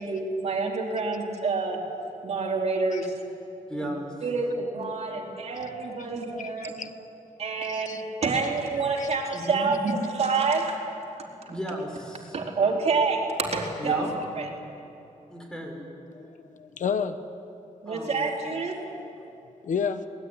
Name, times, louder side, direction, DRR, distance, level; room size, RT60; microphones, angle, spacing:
voice 1, 0.0-1.8 2.2-3.2 4.2-6.7 7.4-10.8 12.3-14.5 17.8-18.8, right 4 dB, 55° right, -1 dB, 4.0 m, -27 dB
voice 2, 3.7-4.1 9.3-9.7 11.5-12.4 13.8-14.1 15.3-15.7 17.9-18.2, equal, 5° left, 1 dB, 6.0 m, -34 dB
voice 3, 6.4-6.9 7.6-8.0 9.0-9.1 16.1-17.2 18.4-18.6 18.9-19.1 19.6-20.1, left 6 dB, 75° left, 10 dB, 1.1 m, -32 dB
25.5 x 20.5 x 10.0 m, 2.8 s
wide cardioid pair, 130°, 13 cm